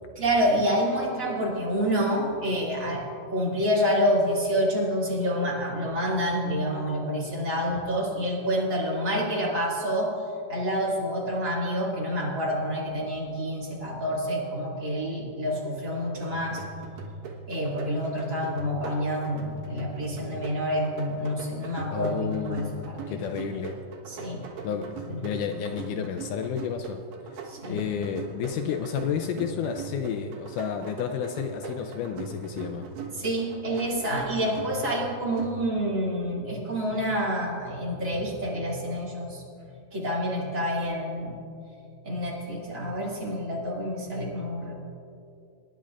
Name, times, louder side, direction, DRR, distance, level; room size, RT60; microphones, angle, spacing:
voice 1, 0.2-10.2 10.5-16.6 17.5-23.2 24.1-24.4 24.8-25.2 27.5-27.9 33.1-41.4 42.0-44.8, equal, 25° right, -5 dB, 2.3 m, -28 dB
sound 1, 16.3-36.0, right 3 dB, 85° right, 2.9 m, -40 dB
voice 2, 21.9-23.8 24.6-24.9 25.2-27.0 27.7-32.9, left 8 dB, 80° left, 6 dB, 2.0 m, -31 dB
25.5 x 10.5 x 2.4 m, 2.6 s
omnidirectional pair, 3.8 m